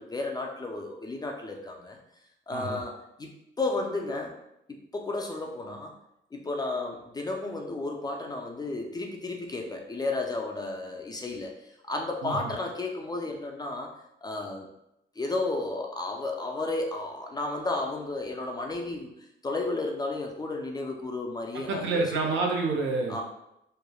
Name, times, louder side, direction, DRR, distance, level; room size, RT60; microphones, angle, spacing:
voice 1, 0.0-2.0 2.5-2.9 3.2-3.3 3.6-4.4 4.7-5.9 6.3-11.5 11.9-13.9 14.2-14.7 15.2-19.1 19.4-22.0 23.1-23.2, left 2 dB, 20° left, 2 dB, 0.3 m, -33 dB
voice 2, 21.5-23.2, right 3 dB, 70° right, 1 dB, 0.6 m, -28 dB
3.0 x 2.1 x 2.2 m, 0.83 s
cardioid pair, 90°, 20 cm